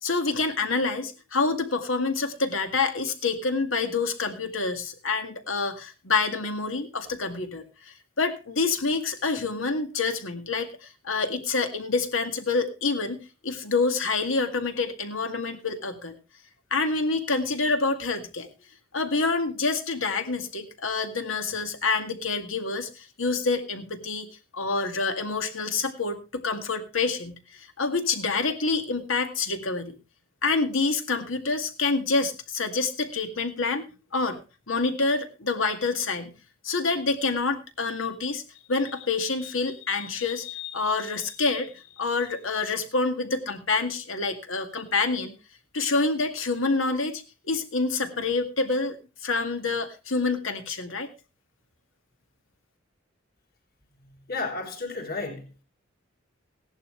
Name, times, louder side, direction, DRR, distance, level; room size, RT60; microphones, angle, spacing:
voice 1, 0.0-16.1 16.7-18.5 18.9-24.3 24.5-30.0 30.4-34.4 34.7-36.3 36.6-38.4 38.7-45.3 45.7-51.1, left 4 dB, 85° left, 7 dB, 2.1 m, -27 dB
voice 2, 54.3-55.6, left 3 dB, 50° left, 3 dB, 3.6 m, -32 dB
16.5 x 11.0 x 3.2 m, 0.30 s
head